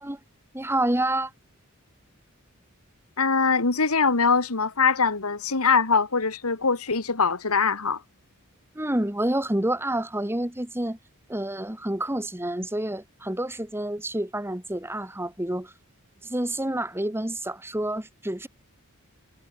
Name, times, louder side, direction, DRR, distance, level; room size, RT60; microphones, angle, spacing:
voice 1, 0.5-1.3 8.7-11.0 11.3-15.7 16.2-18.5, right 1 dB, 10° right, 1.6 m, -28 dB
voice 2, 3.2-8.0, left 5 dB, 80° left, 1.9 m, -22 dB
head